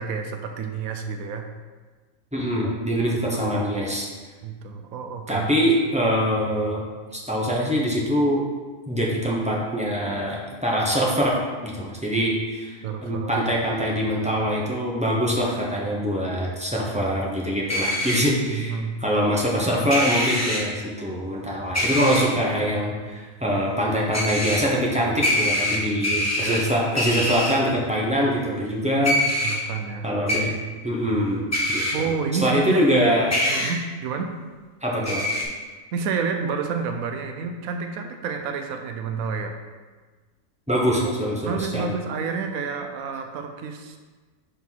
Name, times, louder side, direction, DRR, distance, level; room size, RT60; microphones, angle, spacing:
voice 1, 0.0-1.5 2.6-3.1 3.3-3.6 4.4-5.5 12.8-13.3 18.1-19.0 26.4-26.6 29.4-30.1 31.9-32.9 33.5-34.3 35.9-39.6 41.4-44.0, right 5 dB, 75° right, 4 dB, 1.0 m, -29 dB
voice 2, 2.3-4.1 5.3-6.9 7.1-8.4 8.9-11.4 11.6-29.2 30.0-30.5 30.8-31.8 32.4-33.4 34.8-35.2 40.7-41.9, equal, 10° right, -4 dB, 0.4 m, -24 dB
sound 1, 17.7-18.2 19.9-20.6 21.7-22.2 24.1-24.6 25.2-26.6 26.9-27.5 29.0-29.5 30.3-30.4 31.5-31.9 33.3-33.7 35.1-35.5, left 1 dB, 15° left, 0.7 m, -24 dB
4.6 x 3.7 x 5.4 m, 1.4 s
omnidirectional pair, 1.6 m